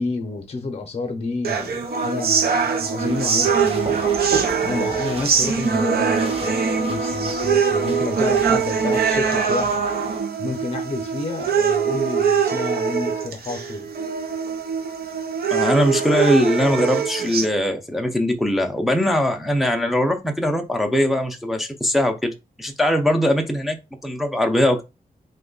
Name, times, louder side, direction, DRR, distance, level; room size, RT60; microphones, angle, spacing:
voice 1, 0.0-4.1 4.6-6.6 6.9-9.8 10.4-13.9, left 3 dB, 40° left, 0.6 m, -29 dB
sound 1, 1.4-17.5, right 6 dB, 85° right, 0.6 m, -22 dB
sound 2, 3.0-10.2, right 3 dB, 40° right, 0.7 m, -35 dB
voice 2, 15.5-24.8, left 1 dB, ahead, 0.4 m, -21 dB
2.9 x 2.2 x 3.8 m
wide cardioid pair, 130°, 15 cm